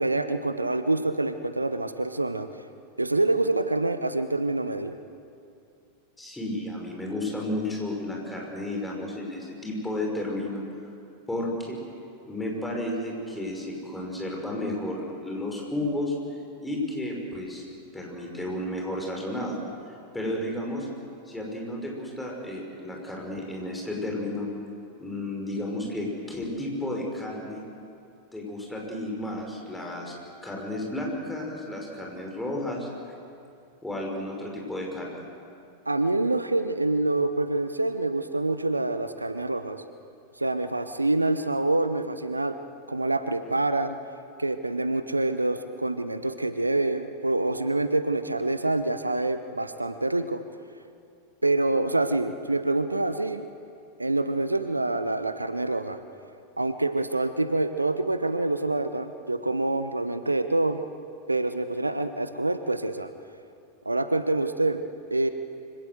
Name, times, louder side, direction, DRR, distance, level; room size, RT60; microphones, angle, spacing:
voice 1, 0.0-2.5 3.0-5.0 35.9-39.8 40.4-42.6 42.9-44.0 44.4-50.4 51.4-53.5 54.0-56.0 56.6-60.8 61.3-63.1 63.8-64.8 65.1-65.3, right 2 dB, 85° right, 10 dB, 0.9 m, -26 dB
voice 2, 6.2-10.9 11.3-11.8 12.3-16.1 16.6-17.6 17.9-19.6 20.1-20.9 21.3-24.5 25.0-27.6 28.3-30.1 30.4-32.9 33.8-35.2, left 1 dB, 5° left, -1 dB, 5.7 m, -32 dB
25.0 x 17.0 x 7.9 m, 2.5 s
figure-of-eight pair, 90°, 0 cm